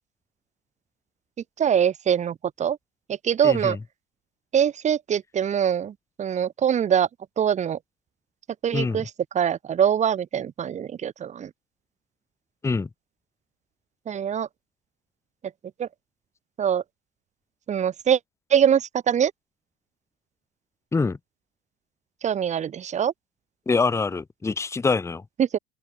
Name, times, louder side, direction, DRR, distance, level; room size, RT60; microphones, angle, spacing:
voice 1, 1.6-2.8 3.1-3.8 4.5-7.1 7.4-7.8 8.6-9.1 9.3-11.5 14.1-14.5 15.8-15.9 16.6-16.8 17.7-18.2 18.5-19.3 22.2-23.1 25.4-25.6, right 8 dB, 25° right, 0.7 m, -23 dB
voice 2, 3.4-3.8 8.7-9.0 12.6-12.9 20.9-21.2 23.7-25.2, left 4 dB, 10° left, 0.7 m, -24 dB
open air
supercardioid pair, 115°, 30 cm